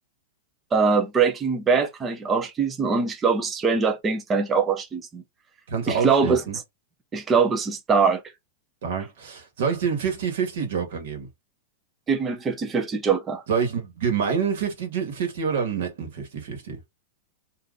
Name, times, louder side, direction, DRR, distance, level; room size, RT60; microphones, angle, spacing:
voice 1, 0.7-5.2 5.9-6.4 7.1-8.2 12.1-13.4, right 5 dB, 10° right, 0.4 m, -22 dB
voice 2, 5.7-6.6 8.8-11.3 13.5-16.8, right 6 dB, 60° right, 1.3 m, -27 dB
2.6 x 2.4 x 3.8 m
supercardioid pair, 175°, 0 cm